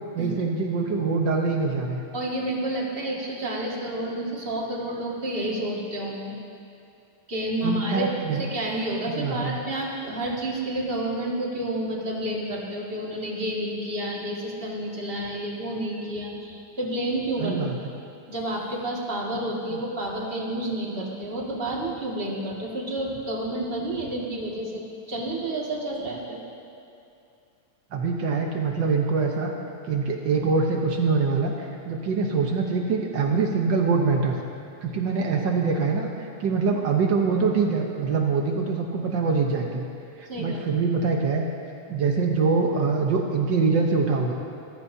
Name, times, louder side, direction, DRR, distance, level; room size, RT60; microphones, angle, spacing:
voice 1, 0.1-2.0 7.6-8.4 9.1-9.6 17.4-17.7 27.9-29.5 29.8-34.4 34.8-39.8 40.2-41.4 41.9-44.3, right 4 dB, 90° right, 1 dB, 1.0 m, -24 dB
voice 2, 2.1-6.3 7.3-8.1 8.5-17.6 18.3-24.8 25.1-26.4 40.3-40.6, right 1 dB, 25° right, -3 dB, 1.7 m, -30 dB
27.5 x 14.5 x 2.8 m, 2.5 s
omnidirectional pair, 3.4 m